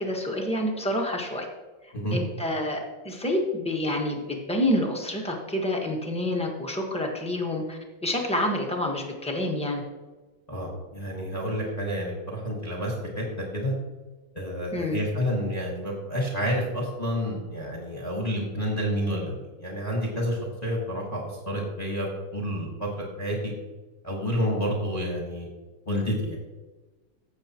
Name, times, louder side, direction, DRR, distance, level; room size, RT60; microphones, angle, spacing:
voice 1, 0.0-1.5 1.8-9.8 14.7-15.0, left 1 dB, 5° left, 0 dB, 0.9 m, -28 dB
voice 2, 10.5-13.7 14.3-22.1 22.3-22.9 23.2-23.5 24.0-25.5 25.9-26.4, equal, 20° left, -2 dB, 1.4 m, -29 dB
15.5 x 7.0 x 2.9 m, 1.2 s
omnidirectional pair, 2.3 m